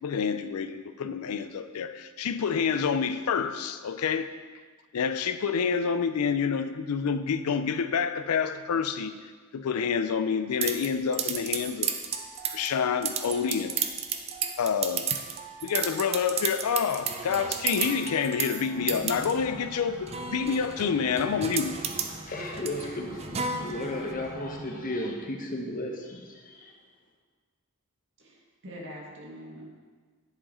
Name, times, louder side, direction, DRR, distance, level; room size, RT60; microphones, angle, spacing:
voice 1, 0.0-4.3 4.9-9.2 9.5-11.9 12.5-13.8 14.6-15.2 15.6-21.8, left 6 dB, 85° left, 11 dB, 0.4 m, -28 dB
sound 1, 10.6-24.1, right 7 dB, 30° right, 0.4 m, -33 dB
sound 2, 18.7-24.9, right 1 dB, 75° right, 2.1 m, -44 dB
voice 2, 22.3-26.7, left 1 dB, 40° left, 1 dB, 0.9 m, -35 dB
voice 3, 28.2-29.7, equal, 60° right, -3 dB, 1.8 m, -44 dB
10.0 x 4.8 x 4.3 m, 1.5 s
head